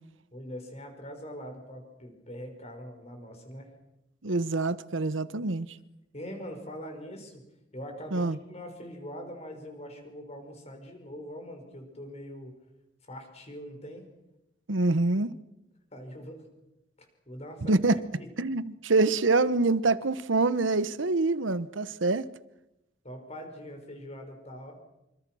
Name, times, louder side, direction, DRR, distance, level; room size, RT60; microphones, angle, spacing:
voice 1, 0.3-3.7 6.1-7.4 7.7-12.6 13.1-14.1 15.9-16.4 17.3-17.8 18.1-18.3 23.0-24.7, equal, 35° left, 5.7 m, -42 dB
voice 2, 4.2-5.7 8.1-8.4 14.7-15.3 17.7-18.0 18.4-22.3, right 3 dB, 90° right, 1.0 m, -25 dB
26.5 x 26.0 x 6.3 m
head